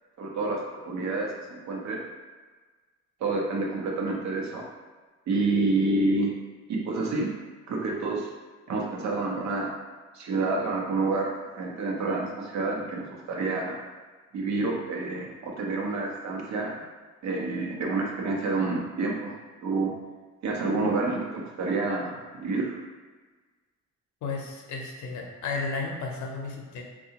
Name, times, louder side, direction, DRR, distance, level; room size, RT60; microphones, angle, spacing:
voice 1, 0.2-2.0 3.2-4.6 5.3-6.3 6.7-7.3 7.7-8.3 8.7-9.7 10.1-13.8 14.3-16.8 17.2-19.3 19.6-19.9 20.4-22.7, right 3 dB, 65° right, -1 dB, 0.8 m, -28 dB
voice 2, 24.2-26.8, left 4 dB, 75° left, 1 dB, 0.7 m, -33 dB
3.6 x 2.3 x 2.8 m, 1.4 s
cardioid pair, 90°, 30 cm